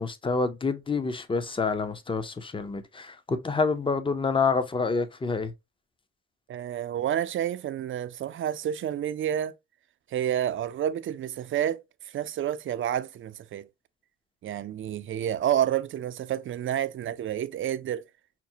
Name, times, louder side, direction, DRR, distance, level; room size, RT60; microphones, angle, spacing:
voice 1, 0.0-5.5, left 4 dB, 15° left, 0.5 m, -27 dB
voice 2, 6.5-9.5 10.1-11.8 12.1-13.7 14.4-18.0, right 10 dB, 45° right, 0.4 m, -29 dB
5.8 x 2.1 x 2.7 m
cardioid pair, 90°, 30 cm